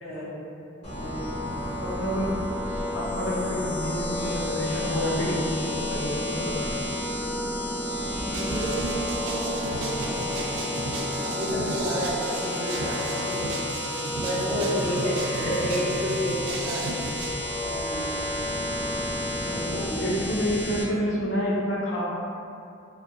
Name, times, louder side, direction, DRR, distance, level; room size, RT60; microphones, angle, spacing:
voice 1, 0.0-0.5 0.8-1.5 8.2-10.2 11.2-13.7 14.1-17.1 17.6-18.5 19.3-20.4, equal, 30° right, -9 dB, 0.6 m, -31 dB
sound 1, 0.8-20.8, equal, 30° left, 0.6 m, -33 dB
Wind instrument woodwind instrument, 0.8-19.9, left 2 dB, 60° right, 0.7 m, -35 dB
voice 2, 1.8-2.3 2.9-6.9 14.8-15.2 19.4-22.0, equal, 75° left, -5 dB, 0.5 m, -29 dB
sound 2, 8.3-17.3, right 2 dB, 75° right, 0.3 m, -34 dB
2.3 x 2.2 x 2.6 m, 2.5 s
head